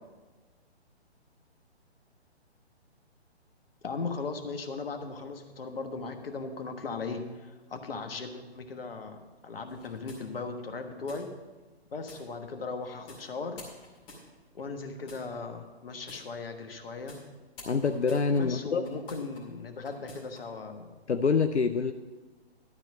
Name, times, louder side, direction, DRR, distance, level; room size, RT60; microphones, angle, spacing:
voice 1, 3.8-11.3 11.9-13.6 14.5-17.2 18.4-20.9, left 4 dB, 55° left, 6 dB, 1.3 m, -38 dB
sound 1, 9.7-10.6 11.1-11.2 12.1-12.2 13.1-13.2 13.6-14.6 15.1-15.2 16.1-16.2 17.1-17.2 17.6-19.4 19.8-20.4, left 2 dB, 20° left, 2.4 m, -49 dB
voice 2, 17.7-18.8 21.1-21.9, left 5 dB, 85° left, 8 dB, 0.6 m, -26 dB
12.0 x 4.4 x 8.1 m, 1.3 s
figure-of-eight pair, 135°, 33 cm